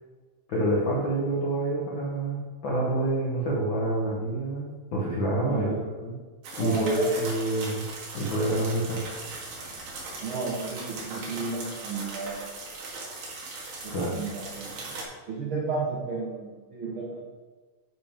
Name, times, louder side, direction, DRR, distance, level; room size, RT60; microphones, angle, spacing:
voice 1, 0.5-6.2 6.6-7.8 8.1-9.0 13.9-14.2, right 1 dB, 70° left, -4 dB, 1.1 m, -27 dB
voice 2, 5.4-5.8 6.6-7.2 10.2-12.5 13.8-14.9 15.3-17.2, right 4 dB, 85° right, -3 dB, 1.1 m, -33 dB
sound 1, 6.4-15.0, right 3 dB, 70° right, 3.1 m, -39 dB
10.5 x 5.3 x 3.5 m, 1.4 s
omnidirectional pair, 3.9 m